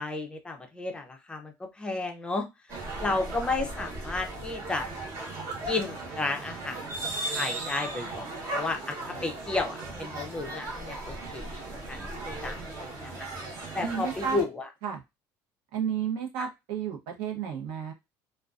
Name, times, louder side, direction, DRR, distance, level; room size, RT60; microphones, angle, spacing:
voice 1, 0.0-2.5 3.0-4.9 5.7-6.8 7.3-8.3 8.5-11.6 11.9-12.0 12.4-13.3 13.7-14.7 16.4-16.5, left 3 dB, 10° left, 4 dB, 0.4 m, -32 dB
sound 1, 2.7-14.4, right 2 dB, 40° right, 1.0 m, -37 dB
voice 2, 13.8-14.4 14.8-15.0 15.7-17.9, right 8 dB, 75° right, 2 dB, 0.7 m, -32 dB
2.4 x 2.2 x 2.3 m, 0.22 s
cardioid pair, 150°, 8 cm